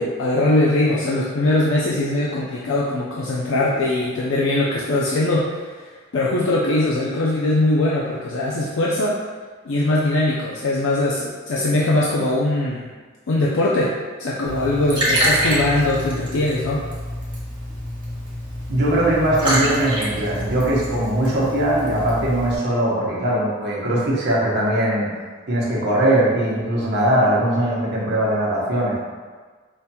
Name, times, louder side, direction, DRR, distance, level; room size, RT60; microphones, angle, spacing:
voice 1, 0.0-5.6 6.1-9.2 9.6-12.9 13.3-13.9 14.2-16.8, left 2 dB, 70° left, -5 dB, 0.4 m, -21 dB
Liquid, 14.4-22.5, equal, 25° right, 1.1 m, -26 dB
voice 2, 18.7-29.0, right 1 dB, 55° right, -5 dB, 0.9 m, -20 dB
5.0 x 2.8 x 2.2 m, 1.4 s
head